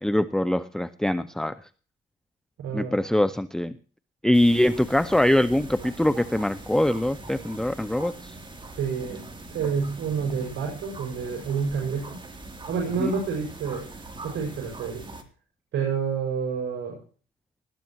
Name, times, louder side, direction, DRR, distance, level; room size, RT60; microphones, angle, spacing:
voice 1, 0.0-1.5 2.7-3.7 4.2-8.3 13.0-13.1, left 1 dB, 5° left, 12 dB, 0.6 m, -23 dB
voice 2, 2.6-2.9 8.8-9.2 9.5-12.2 12.7-13.9 14.2-15.0 15.7-17.0, right 6 dB, 80° right, 0 dB, 6.3 m, -28 dB
sound 1, 4.3-15.2, right 2 dB, 25° right, 3.3 m, -42 dB
19.5 x 13.5 x 3.1 m, 0.40 s
cardioid pair, 90°, 20 cm